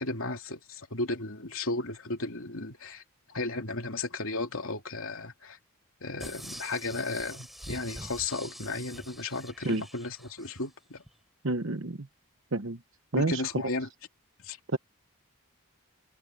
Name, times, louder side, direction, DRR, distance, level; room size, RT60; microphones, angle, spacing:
voice 1, 0.0-3.0 3.3-5.6 6.0-11.0 13.2-13.9 14.4-14.6, left 2 dB, 70° left, 3.0 m, -34 dB
sound 1, 6.2-10.6 11.1-11.2, equal, ahead, 4.0 m, -45 dB
voice 2, 11.4-12.1 12.5-12.8 13.1-13.4 14.7-14.8, right 2 dB, 60° right, 1.0 m, -28 dB
head